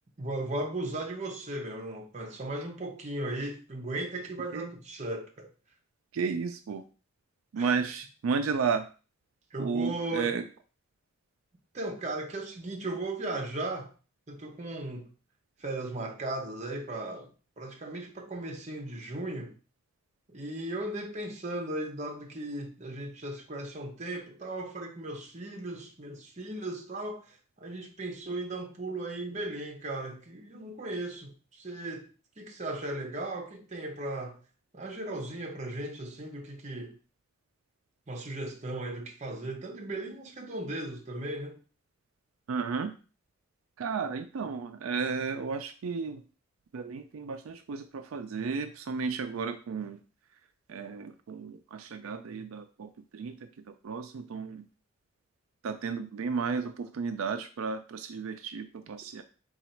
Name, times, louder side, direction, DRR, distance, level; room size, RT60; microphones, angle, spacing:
voice 1, 0.2-5.5 7.6-7.7 9.5-10.4 11.7-13.9 14.3-15.1 15.6-19.5 20.3-32.1 32.4-34.4 34.7-37.0 38.1-41.6, right 2 dB, 35° right, 0.8 m, -37 dB
voice 2, 6.1-6.8 7.5-8.9 9.6-10.4 42.5-42.9 43.8-46.2 46.7-50.0 50.7-54.6 55.6-59.2, right 5 dB, 85° right, 0.4 m, -33 dB
3.9 x 2.4 x 4.4 m
head